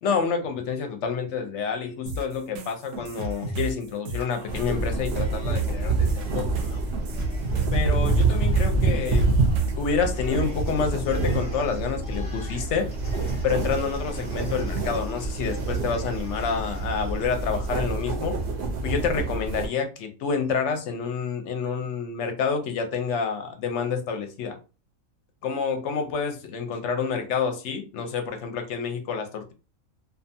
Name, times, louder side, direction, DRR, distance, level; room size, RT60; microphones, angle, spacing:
voice 1, 0.0-6.8 7.7-9.3 9.8-12.9 13.4-18.4 18.8-24.6 25.4-29.5, left 5 dB, 65° left, 0.8 m, -28 dB
sound 1, 2.1-9.9, right 3 dB, 75° right, 1.0 m, -34 dB
Cheering, 3.0-3.8 4.1-18.6, left 1 dB, 25° left, 0.9 m, -49 dB
sound 2, 4.5-19.7, right 3 dB, 55° right, 0.7 m, -26 dB
2.6 x 2.3 x 2.6 m
omnidirectional pair, 1.4 m